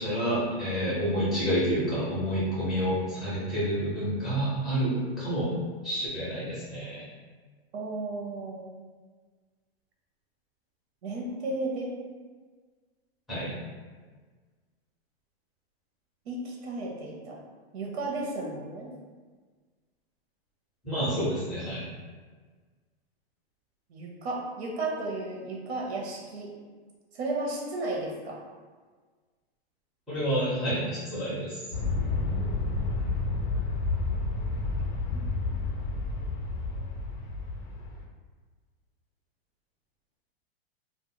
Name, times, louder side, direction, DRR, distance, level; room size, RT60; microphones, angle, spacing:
voice 1, 0.0-5.5 5.8-7.0 13.3-13.5 20.8-21.8 30.1-31.6, equal, ahead, -11 dB, 0.5 m, -29 dB
voice 2, 7.7-8.6 11.0-11.9 16.3-17.4 17.7-18.9 23.9-26.5 27.1-28.4 35.1-35.2, right 2 dB, 90° right, -1 dB, 0.8 m, -34 dB
Aircraft, 31.7-38.0, left 3 dB, 55° left, 0.4 m, -30 dB
2.3 x 2.1 x 3.7 m, 1.5 s
supercardioid pair, 175°, 31 cm